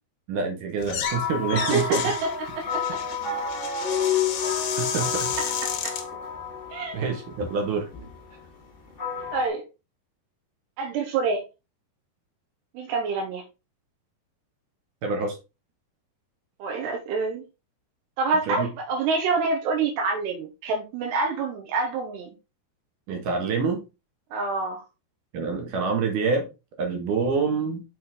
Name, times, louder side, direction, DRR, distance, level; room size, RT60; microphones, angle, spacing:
voice 1, 0.3-2.0 3.8-4.0 4.8-5.3 6.9-7.9 15.0-15.4 18.5-18.7 23.1-23.8 25.3-26.5 26.8-27.8, right 4 dB, 60° right, 2.7 m, -26 dB
sound 1, 0.8-1.2 1.5-6.1, left 8 dB, 80° left, 1.6 m, -32 dB
sound 2, 1.0-9.5, left 6 dB, 25° left, 1.6 m, -30 dB
voice 2, 1.5-3.0 5.4-5.5 5.8-5.9 6.7-7.0 9.3-9.6 10.8-11.4 12.7-13.4 16.6-17.4 18.2-22.3 24.3-24.8, right 4 dB, 85° right, 3.2 m, -27 dB
6.4 x 5.6 x 3.6 m
omnidirectional pair, 4.8 m